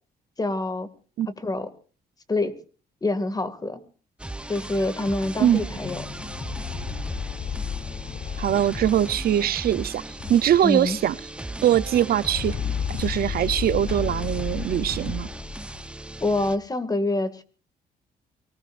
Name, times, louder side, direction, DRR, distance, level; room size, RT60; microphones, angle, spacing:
voice 1, 0.4-0.9 1.3-1.7 2.3-2.5 3.0-3.8 4.5-6.1 10.6-11.0 16.2-17.4, left 2 dB, 20° left, 2.2 m, -26 dB
sound 1, 4.2-16.6, right 1 dB, 5° right, 0.8 m, -37 dB
sound 2, 5.7-10.9 11.1-11.2 11.5-15.9, left 8 dB, 45° left, 0.7 m, -33 dB
voice 2, 8.4-10.0 10.3-11.1 11.6-12.6 13.0-15.3, right 11 dB, 65° right, 0.7 m, -22 dB
24.5 x 19.0 x 2.6 m
cardioid pair, 105°, 17 cm